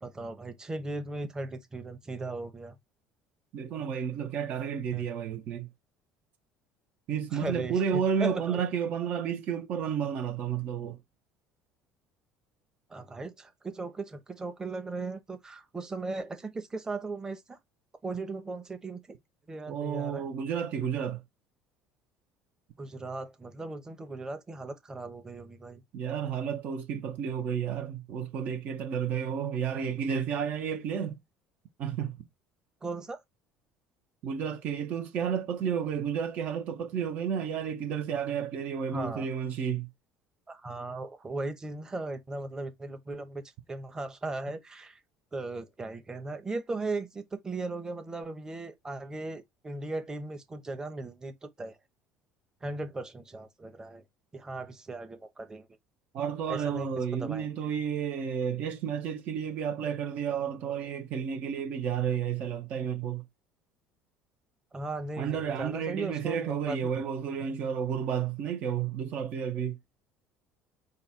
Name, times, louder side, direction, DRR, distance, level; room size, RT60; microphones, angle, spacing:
voice 1, 0.0-2.7 4.9-5.1 7.3-8.6 12.9-17.6 18.0-19.2 19.5-20.2 22.8-25.8 32.8-33.2 38.9-39.3 40.5-43.4 43.7-45.0 45.3-51.8 52.6-54.0 54.3-55.7 56.5-57.7 64.7-67.0, right 3 dB, 20° right, 1.1 m, -37 dB
voice 2, 3.5-5.7 7.1-11.0 19.7-21.2 25.9-31.2 31.8-32.2 34.2-39.9 56.1-63.2 65.2-69.8, right 7 dB, 55° right, 0.9 m, -31 dB
4.0 x 2.4 x 4.2 m
hypercardioid pair, 65°, 3 cm